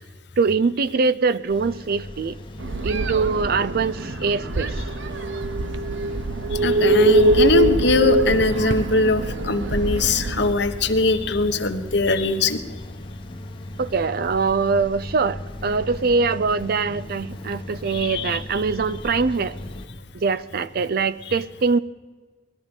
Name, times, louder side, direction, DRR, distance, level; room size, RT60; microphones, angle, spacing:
voice 1, 0.4-2.4 2.8-4.8 13.8-19.6 20.1-21.8, right 4 dB, 55° right, 16 dB, 0.5 m, -23 dB
sound 1, 1.5-19.9, left 1 dB, 30° left, 1.0 m, -38 dB
sound 2, 2.6-10.5, right 2 dB, 85° right, 0.9 m, -23 dB
voice 2, 6.6-12.6 17.9-18.4, left 3 dB, 65° left, 8 dB, 1.2 m, -21 dB
19.5 x 12.5 x 5.3 m, 1.5 s
head